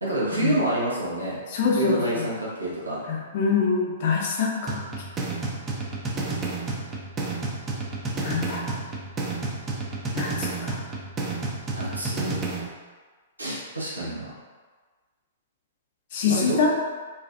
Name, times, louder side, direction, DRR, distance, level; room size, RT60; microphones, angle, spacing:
voice 1, 0.0-1.4 1.8-3.0 11.8-12.4 13.4-14.3 16.3-16.7, right 1 dB, 80° right, -6 dB, 0.7 m, -28 dB
voice 2, 1.5-2.3 3.1-4.8 8.2-8.7 10.1-10.8 16.1-16.7, left 5 dB, 45° left, -2 dB, 0.5 m, -25 dB
sound 1, 4.7-12.7, right 3 dB, 20° right, 0.3 m, -31 dB
2.4 x 2.3 x 2.4 m, 1.4 s
figure-of-eight pair, 110°, 0 cm